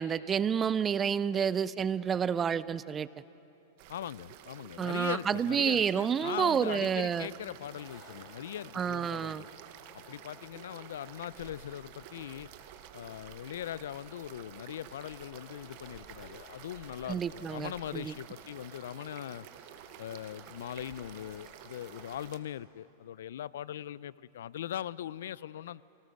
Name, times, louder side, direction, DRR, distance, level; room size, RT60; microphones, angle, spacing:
voice 1, 0.0-3.1 4.8-7.3 8.8-9.4 17.1-18.1, right 7 dB, 20° right, 18 dB, 0.4 m, -29 dB
sound 1, 3.8-22.4, right 12 dB, 50° right, 1.0 m, -51 dB
voice 2, 3.9-9.5 9.9-12.5 12.9-19.5 20.0-25.8, left 11 dB, 80° left, 21 dB, 0.4 m, -40 dB
sound 2, 7.7-22.4, right 1 dB, ahead, 3.3 m, -57 dB
24.0 x 18.0 x 6.4 m, 2.9 s
supercardioid pair, 145°, 0 cm